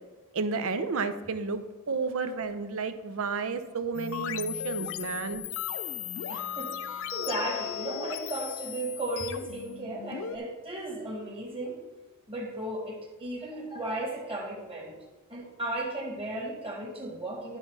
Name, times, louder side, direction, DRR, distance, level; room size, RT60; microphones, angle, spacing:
voice 1, 0.3-5.4, right 4 dB, 70° right, 10 dB, 0.6 m, -31 dB
sound 1, 3.9-10.4, left 10 dB, 65° left, 0.4 m, -36 dB
voice 2, 6.3-11.8 12.3-14.9 15.3-17.6, right 1 dB, 25° right, -1 dB, 1.7 m, -35 dB
11.0 x 4.0 x 4.7 m, 1.2 s
head